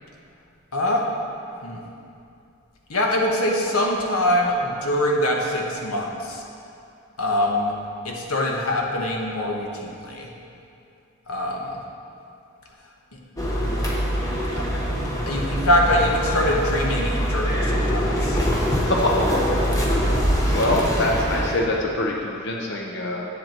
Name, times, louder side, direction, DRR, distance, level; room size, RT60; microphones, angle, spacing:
voice 1, 0.7-1.0 1.6-1.8 2.9-6.4 7.2-7.7 8.0-10.3 11.3-11.7 13.1-13.2 14.6-14.7 15.3-18.4, left 1 dB, 90° left, 0 dB, 1.3 m, -23 dB
Construction site, 13.4-21.6, equal, 15° left, 1.1 m, -23 dB
voice 2, 18.9-19.6 19.8-19.9 20.2-23.3, left 1 dB, 55° left, -1 dB, 0.8 m, -24 dB
10.5 x 7.6 x 4.5 m, 2.6 s
head